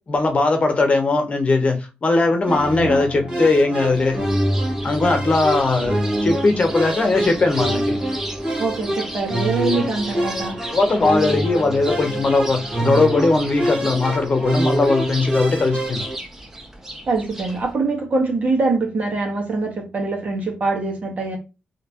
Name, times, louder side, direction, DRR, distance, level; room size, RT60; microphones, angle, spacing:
voice 1, 0.1-4.2 4.8-8.0 10.7-16.1, left 3 dB, 40° left, 0.9 m, -19 dB
sound 1, 2.4-16.2, right 1 dB, 30° right, 1.8 m, -25 dB
sound 2, 3.9-17.7, right 1 dB, 10° right, 0.8 m, -35 dB
voice 2, 8.6-10.6 17.1-21.4, right 3 dB, 50° right, 1.5 m, -23 dB
3.1 x 2.9 x 2.9 m
cardioid pair, 95°, 3 cm